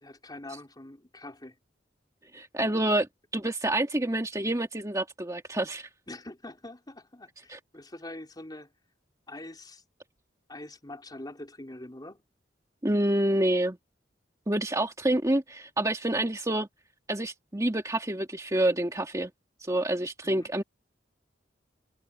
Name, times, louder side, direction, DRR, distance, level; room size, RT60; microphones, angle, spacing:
voice 1, 0.0-1.6 6.1-8.7 9.3-9.8 10.5-12.2 20.2-20.5, left 1 dB, 20° left, 3.9 m, -44 dB
voice 2, 2.3-3.1 3.3-5.9 7.5-7.6 12.8-13.8 14.5-16.7 17.1-19.3 19.6-20.6, right 1 dB, 20° right, 2.0 m, -27 dB
head